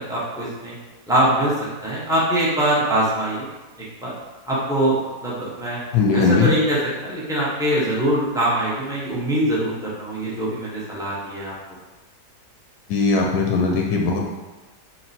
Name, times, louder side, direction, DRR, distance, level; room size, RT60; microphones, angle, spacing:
voice 1, 0.1-0.7 1.1-1.5 1.8-3.5 4.0-4.1 4.5-5.0 5.2-5.8 6.1-6.8 7.0-11.5, right 1 dB, 5° right, -8 dB, 0.4 m, -22 dB
voice 2, 5.9-6.5 12.9-14.2, left 4 dB, 75° left, 0 dB, 1.0 m, -19 dB
4.2 x 2.2 x 4.1 m, 1.2 s
omnidirectional pair, 1.8 m